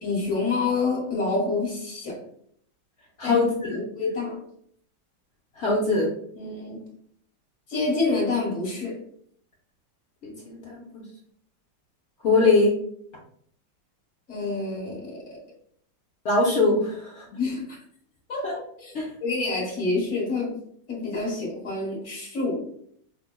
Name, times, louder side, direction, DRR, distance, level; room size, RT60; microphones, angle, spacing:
voice 1, 0.0-2.2 3.2-4.4 6.3-6.8 7.7-9.0 14.3-15.4 17.3-17.8 18.3-18.5 18.8-18.9 19.2-20.6 20.9-22.7, left 3 dB, 40° left, -4 dB, 1.6 m, -28 dB
voice 2, 3.2-3.8 5.6-6.1 10.2-11.0 12.2-12.8 16.2-17.2 18.4-18.5 18.9-19.1, left 3 dB, 70° left, -3 dB, 0.6 m, -22 dB
5.5 x 2.1 x 2.2 m, 0.65 s
omnidirectional pair, 2.0 m